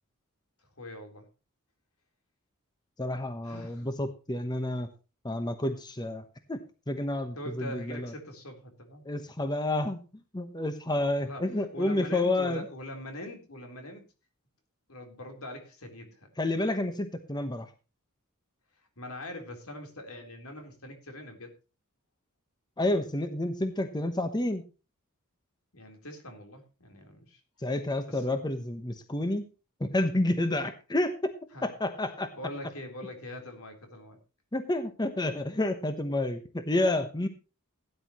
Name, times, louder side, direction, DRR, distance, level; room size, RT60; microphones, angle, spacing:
voice 1, 0.8-1.3 3.4-3.9 7.4-9.0 11.2-14.0 14.9-16.3 19.0-21.5 25.7-27.4 28.1-28.3 31.5-31.7 32.3-34.2, left 1 dB, 80° left, 4 dB, 3.9 m, -42 dB
voice 2, 3.0-4.9 5.2-8.1 9.0-10.0 10.3-12.6 16.4-17.7 22.8-24.6 27.6-29.5 29.8-31.3 31.6-32.3 34.5-37.3, left 1 dB, 20° left, 8 dB, 1.1 m, -30 dB
17.0 x 10.5 x 3.1 m, 0.32 s
head